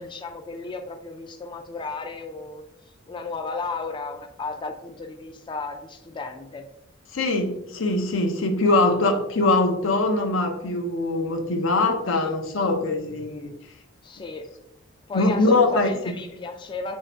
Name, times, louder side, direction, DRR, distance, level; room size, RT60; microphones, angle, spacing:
voice 1, 0.0-2.6 3.1-6.7 12.2-12.3 14.0-14.5 15.1-17.0, left 3 dB, 25° left, 5 dB, 0.3 m, -34 dB
voice 2, 7.1-13.5 15.1-15.9, left 2 dB, 85° left, 5 dB, 0.7 m, -22 dB
6.2 x 3.1 x 2.7 m, 0.85 s
head